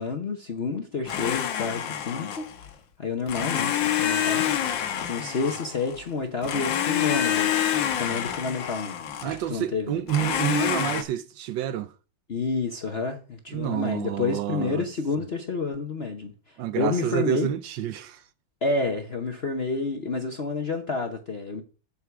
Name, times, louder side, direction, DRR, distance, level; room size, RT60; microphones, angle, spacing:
voice 1, 0.0-2.4 3.0-7.5 8.0-8.9 9.2-10.0 12.3-17.5 18.6-21.6, left 4 dB, 50° left, 0.8 m, -29 dB
Domestic sounds home sounds, 1.1-2.7 3.3-6.0 6.4-9.5 10.1-11.0, left 10 dB, 70° left, 1.6 m, -27 dB
voice 2, 9.2-11.9 13.5-14.8 16.6-18.2, right 11 dB, 75° right, 1.2 m, -28 dB
8.0 x 7.2 x 5.9 m
omnidirectional pair, 2.3 m